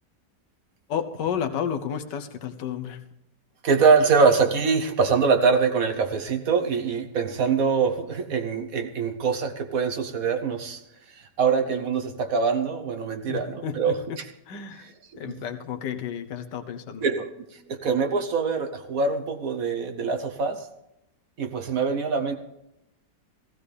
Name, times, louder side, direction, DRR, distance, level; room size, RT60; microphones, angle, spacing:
voice 1, 0.9-3.0 13.3-14.2 14.5-14.9 15.2-17.0, left 8 dB, 80° left, 7 dB, 1.6 m, -31 dB
voice 2, 3.6-10.8 11.1-14.3 14.8-14.9 15.3-15.4 17.0-20.7 21.4-22.4, right 5 dB, 55° right, 7 dB, 1.3 m, -24 dB
16.0 x 15.5 x 3.4 m, 0.84 s
omnidirectional pair, 1.9 m